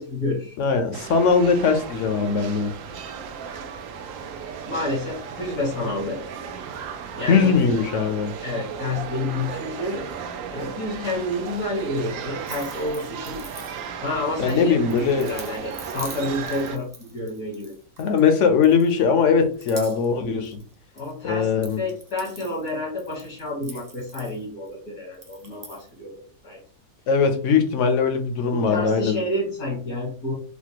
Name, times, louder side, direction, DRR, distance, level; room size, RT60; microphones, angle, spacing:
voice 1, 0.0-0.6 4.7-6.2 7.1-7.5 8.4-10.0 10.5-13.4 14.0-17.7 20.9-21.5 21.8-26.6 28.5-30.3, left 1 dB, 85° left, -6 dB, 1.8 m, -29 dB
voice 2, 0.6-2.7 7.3-8.3 14.4-15.3 18.0-20.6 21.2-21.8 27.1-29.2, left 5 dB, 65° left, 6 dB, 0.9 m, -20 dB
sound 1, 0.9-16.8, right 6 dB, 70° right, 0.9 m, -35 dB
sound 2, 12.5-14.1 14.5-18.3 18.6-19.2 19.5-20.2 20.4-21.1 21.4-24.7 25.1-25.9, right 2 dB, 30° right, 0.3 m, -44 dB
4.2 x 2.3 x 2.8 m, 0.40 s
omnidirectional pair, 1.5 m